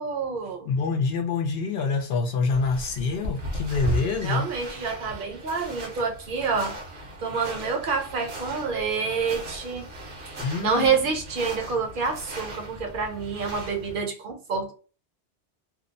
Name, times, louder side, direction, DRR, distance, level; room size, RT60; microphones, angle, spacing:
voice 1, 0.0-0.7 4.2-6.8 7.2-9.9 10.6-14.7, right 5 dB, 55° right, 0.7 m, -27 dB
voice 2, 0.7-4.5 10.4-11.0, left 4 dB, 65° left, 0.7 m, -26 dB
sound 1, 2.5-14.0, right 1 dB, 80° right, 1.2 m, -37 dB
2.7 x 2.0 x 2.5 m
omnidirectional pair, 1.2 m